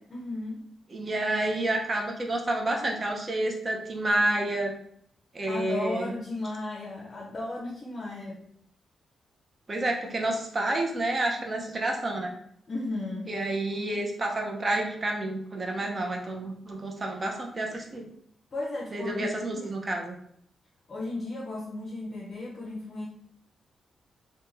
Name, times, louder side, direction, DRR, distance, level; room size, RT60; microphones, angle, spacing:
voice 1, 0.1-0.6 5.5-8.4 12.7-13.4 18.5-19.9 20.9-23.0, left 2 dB, 40° left, -3 dB, 0.6 m, -35 dB
voice 2, 0.9-4.7 5.3-6.1 9.7-12.3 13.3-18.1 18.9-20.1, right 1 dB, 35° right, 2 dB, 0.6 m, -29 dB
2.5 x 2.2 x 3.0 m, 0.66 s
cardioid pair, 100°, 0 cm